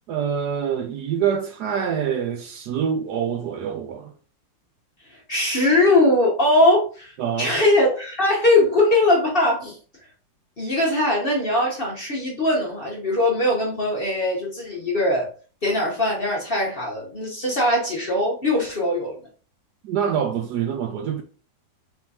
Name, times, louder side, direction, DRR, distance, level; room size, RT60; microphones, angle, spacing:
voice 1, 0.1-4.1 7.2-7.5 19.8-21.2, right 8 dB, 70° right, 1.0 m, -25 dB
voice 2, 5.1-9.8 10.6-15.3 15.6-19.2, left 1 dB, 40° left, 0.9 m, -21 dB
4.3 x 3.6 x 2.7 m
omnidirectional pair, 2.0 m